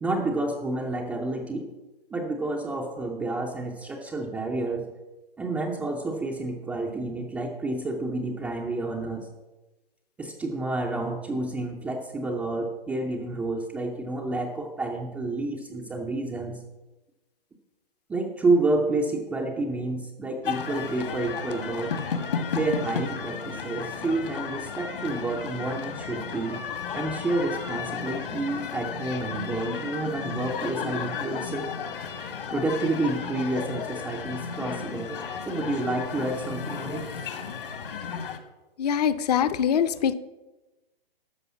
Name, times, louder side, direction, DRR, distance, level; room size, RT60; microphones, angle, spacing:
voice 1, 0.0-1.7 2.1-4.9 5.4-9.3 10.2-16.6 18.1-21.9 22.5-26.6 26.9-31.7 32.0-32.1 32.5-37.0, right 2 dB, 5° right, 0 dB, 0.4 m, -29 dB
sound 1, 20.4-38.4, left 6 dB, 65° left, 1.5 m, -33 dB
voice 2, 38.8-40.1, left 8 dB, 40° left, 13 dB, 0.7 m, -23 dB
12.5 x 5.3 x 7.2 m, 1.1 s
hypercardioid pair, 130°, 30 cm